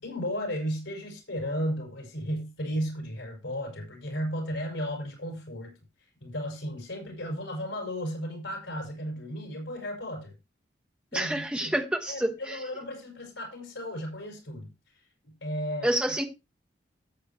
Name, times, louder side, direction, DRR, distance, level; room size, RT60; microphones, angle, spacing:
voice 1, 0.0-5.7 6.2-10.3 11.1-11.8 12.1-14.7 15.2-15.9, equal, 90° left, 5.3 m, -34 dB
voice 2, 11.1-12.6 15.8-16.2, right 1 dB, 5° right, 1.2 m, -28 dB
13.5 x 8.5 x 2.9 m
head